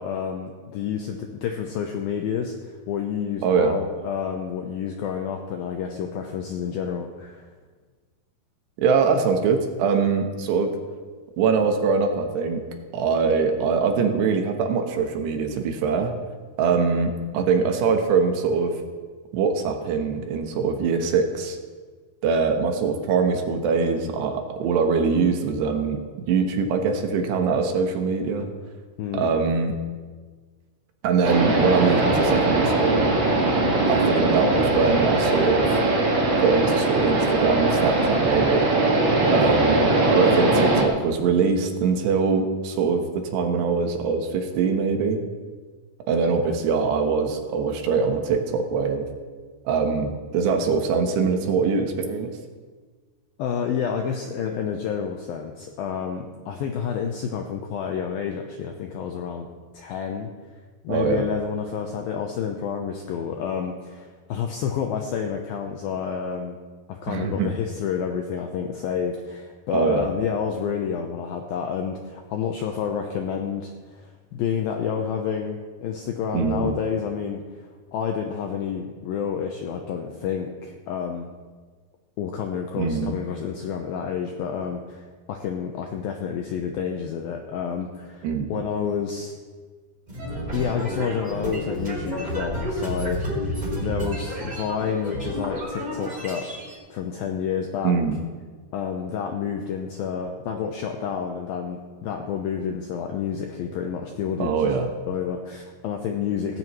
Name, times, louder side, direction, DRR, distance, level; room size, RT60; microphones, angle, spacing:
voice 1, 0.0-7.5 29.0-29.3 53.4-59.5 59.7-60.3 60.8-66.6 66.9-81.3 82.2-89.3 90.5-96.5 96.9-98.0 98.7-104.7 105.1-106.6, left 7 dB, 85° left, 3 dB, 2.1 m, -29 dB
voice 2, 3.4-3.8 8.8-10.8 11.4-12.6 12.9-16.1 16.6-18.8 19.3-21.6 22.2-28.5 29.1-29.7 31.0-33.1 33.9-35.7 36.4-38.7 39.3-45.2 46.1-49.1 49.7-52.3 60.9-61.3 67.1-67.5 69.7-70.1 76.3-76.7 82.8-83.1 88.2-88.6 97.8-98.2 104.4-104.9, right 5 dB, 75° right, 4 dB, 3.1 m, -23 dB
sound 1, 31.2-40.8, right 2 dB, 50° right, 1.4 m, -20 dB
sound 2, 90.1-96.7, equal, 15° right, 2.6 m, -30 dB
17.5 x 16.0 x 3.1 m, 1.4 s
omnidirectional pair, 5.3 m